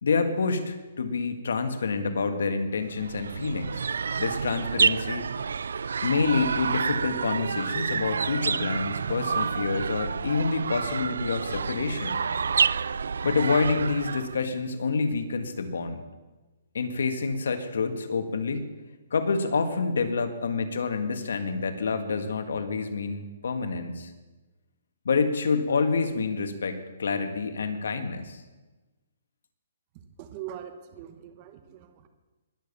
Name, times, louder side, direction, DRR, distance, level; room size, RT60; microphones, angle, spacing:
voice 1, 0.0-3.9 4.2-5.2 6.0-12.2 13.2-16.0 16.7-18.7 19.1-24.1 25.1-28.4, left 4 dB, 80° left, 7 dB, 1.8 m, -27 dB
sound 1, 2.9-14.4, right 6 dB, 85° right, 0.3 m, -29 dB
voice 2, 30.2-32.1, right 11 dB, 30° right, 7 dB, 1.1 m, -42 dB
20.5 x 7.3 x 7.0 m, 1.2 s
hypercardioid pair, 160°, 0 cm